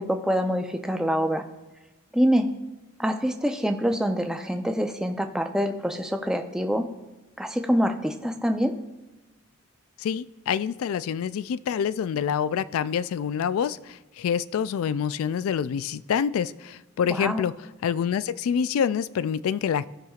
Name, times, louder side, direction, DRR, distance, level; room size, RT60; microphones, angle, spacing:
voice 1, 0.0-1.4 2.1-2.5 3.0-6.9 7.4-8.7 17.1-17.5, equal, 5° right, 5 dB, 0.5 m, -25 dB
voice 2, 10.0-13.8 14.2-17.5 17.8-19.9, left 7 dB, 80° left, 17 dB, 0.3 m, -26 dB
16.0 x 5.8 x 2.4 m, 1.1 s
head